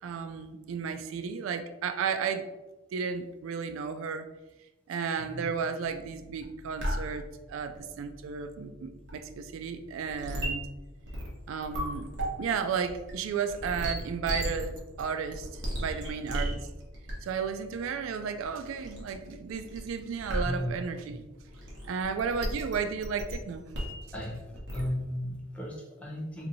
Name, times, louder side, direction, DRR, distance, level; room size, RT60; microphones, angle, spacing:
voice 1, 0.0-2.5 2.9-4.3 4.9-10.7 11.5-12.1 12.4-16.7 17.2-21.3 21.8-23.6, right 6 dB, 85° right, 9 dB, 0.3 m, -33 dB
sound 1, 5.8-24.9, equal, 65° right, 1.0 m, -38 dB
voice 2, 24.1-26.5, equal, 5° left, -4 dB, 0.7 m, -36 dB
2.9 x 2.6 x 3.9 m, 1.1 s
head